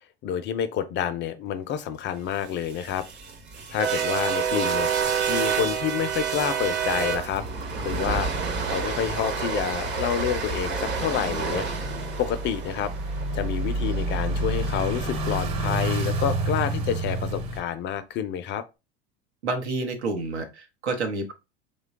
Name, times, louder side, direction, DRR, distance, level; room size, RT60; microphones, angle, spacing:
voice 1, 0.2-3.1 3.7-4.9 5.3-7.4 7.8-8.3 8.7-11.7 12.2-12.9 13.3-18.6, left 9 dB, 35° left, 0.4 m, -28 dB
sound 1, 2.5-14.7, right 6 dB, 35° right, 0.7 m, -29 dB
sound 2, 5.0-17.6, right 1 dB, 50° right, 1.2 m, -31 dB
voice 2, 19.4-21.3, right 3 dB, 90° right, 0.9 m, -29 dB
3.2 x 2.2 x 3.5 m
hypercardioid pair, 100°, 32 cm